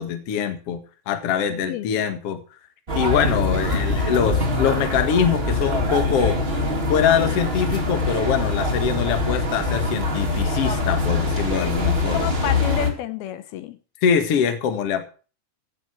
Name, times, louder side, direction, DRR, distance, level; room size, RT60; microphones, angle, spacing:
voice 1, 0.0-2.4 2.9-6.4 6.9-12.2 14.0-15.1, left 8 dB, 50° left, 8 dB, 2.2 m, -23 dB
voice 2, 1.5-2.0 12.1-13.8, left 11 dB, 80° left, 13 dB, 2.8 m, -30 dB
sound 1, 2.9-12.9, left 2 dB, 20° right, 2.4 m, -23 dB
16.0 x 7.9 x 6.2 m, 0.37 s
omnidirectional pair, 4.4 m